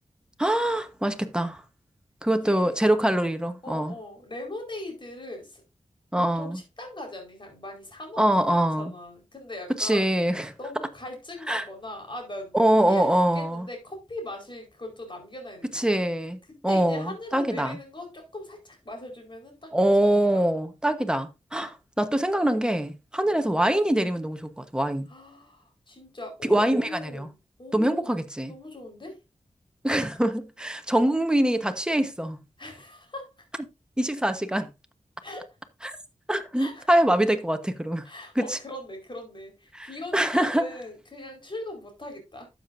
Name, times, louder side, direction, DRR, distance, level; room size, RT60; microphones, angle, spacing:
voice 1, 0.4-1.6 2.2-3.9 6.1-6.6 8.2-8.9 9.8-10.5 11.5-11.6 12.5-13.7 15.7-16.4 16.6-17.8 19.7-25.1 26.4-27.3 27.7-28.5 29.8-32.4 34.0-34.7 35.8-36.0 36.3-38.0 38.4-38.6 39.7-39.9 40.1-40.7, right 1 dB, 5° right, 1.2 m, -24 dB
voice 2, 2.2-2.9 3.6-5.6 6.1-10.1 10.6-16.0 16.5-19.7 20.0-20.4 23.2-23.4 25.1-28.2 28.5-29.2 32.6-33.5 35.2-35.6 36.6-36.9 38.0-42.5, left 1 dB, 40° left, 4.7 m, -40 dB
12.0 x 7.8 x 2.7 m
wide cardioid pair, 95°, 13 cm